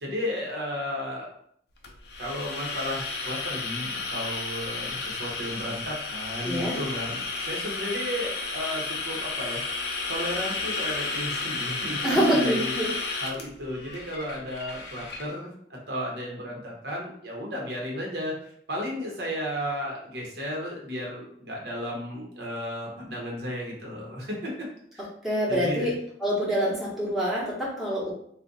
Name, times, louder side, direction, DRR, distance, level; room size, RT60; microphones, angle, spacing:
voice 1, 0.0-1.3 2.2-9.6 10.1-12.7 13.2-15.5 15.9-24.7 24.9-25.1 25.5-25.9, equal, 70° right, -2 dB, 0.9 m, -34 dB
sound 1, 1.8-15.3, left 3 dB, 65° left, 0.5 m, -32 dB
voice 2, 6.4-6.7 12.0-12.9 25.2-25.9 26.2-28.1, equal, ahead, -8 dB, 0.8 m, -25 dB
2.5 x 2.1 x 3.8 m, 0.67 s
head